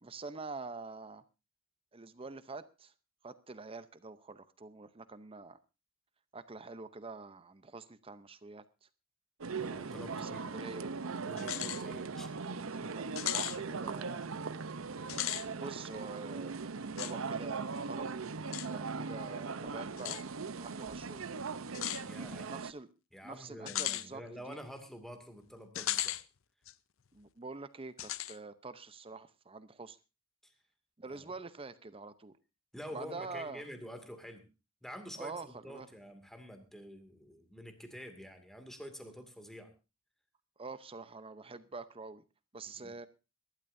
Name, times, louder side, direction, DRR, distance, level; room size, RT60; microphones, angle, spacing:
voice 1, 0.0-1.2 1.9-2.9 3.2-5.6 6.3-8.6 10.1-10.9 12.5-13.1 13.3-14.3 15.5-18.1 18.7-20.2 20.6-21.3 22.5-22.9 23.2-24.6 27.1-30.0 31.0-32.3 32.9-33.6 35.2-35.9 40.6-42.2 42.5-43.1, right 3 dB, 25° right, 0.7 m, -46 dB
sound 1, 9.4-22.7, right 4 dB, 80° right, 0.8 m, -39 dB
voice 2, 9.6-10.5 11.2-12.3 22.0-22.5 23.1-26.2 30.4-30.5 31.1-31.3 32.7-34.5 34.8-39.7 42.8-43.0, equal, ahead, 2.3 m, -48 dB
sound 2, 11.4-11.8 12.2-12.3 13.2-13.6 15.0-15.5 17.0-17.1 18.5-18.7 20.0-20.2 21.7-22.0 23.7-24.1 25.7-26.2 26.7-26.8 28.0-28.4, left 13 dB, 70° left, 0.6 m, -36 dB
23.5 x 12.5 x 2.7 m
head